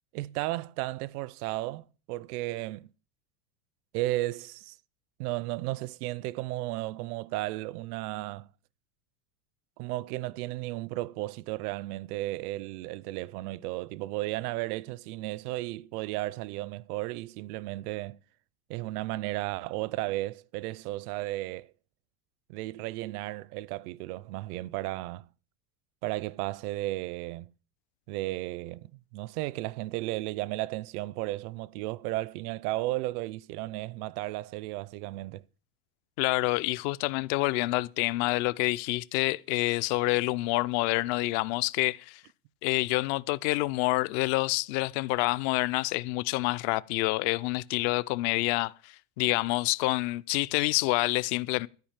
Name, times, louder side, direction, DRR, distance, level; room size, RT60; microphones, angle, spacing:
voice 1, 0.1-2.9 3.9-4.8 5.2-8.5 9.8-18.2 18.7-21.7 22.5-25.3 26.0-27.5 28.1-35.4, right 18 dB, 70° right, 0.6 m, -34 dB
voice 2, 36.2-42.2 42.6-51.7, left 20 dB, 45° left, 0.5 m, -27 dB
13.5 x 5.0 x 8.8 m
supercardioid pair, 155°, 48 cm